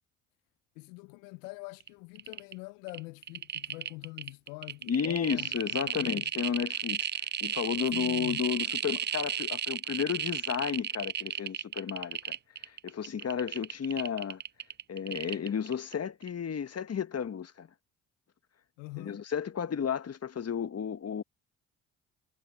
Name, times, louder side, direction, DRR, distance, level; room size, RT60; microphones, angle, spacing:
voice 1, 0.8-6.2 7.9-8.4 18.8-19.2, left 26 dB, 80° left, 1.0 m, -44 dB
sound 1, 1.8-1.9 2.1-2.5 2.9-15.9 16.2-16.3, right 9 dB, 30° right, 0.5 m, -34 dB
voice 2, 4.9-7.1 7.4-12.4 12.6-14.4 14.9-17.7 19.0-21.2, left 7 dB, 40° left, 1.6 m, -33 dB
hypercardioid pair, 50°, 38 cm